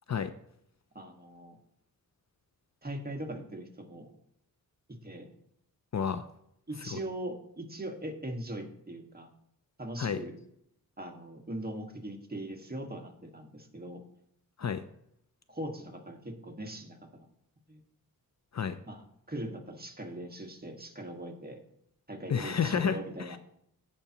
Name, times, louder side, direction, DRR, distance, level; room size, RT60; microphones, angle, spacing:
voice 1, 0.9-1.6 2.8-4.1 4.9-5.3 6.7-9.3 9.8-10.4 11.0-14.0 15.5-17.0 17.7-17.8 18.8-21.6 22.1-23.4, right 1 dB, 25° right, 2 dB, 1.6 m, -40 dB
voice 2, 5.9-6.3 6.9-7.0 10.0-10.2 14.6-14.8 18.5-18.8 22.3-23.4, left 7 dB, 50° left, 11 dB, 0.5 m, -30 dB
15.5 x 5.8 x 2.9 m, 0.74 s
wide cardioid pair, 80°, 36 cm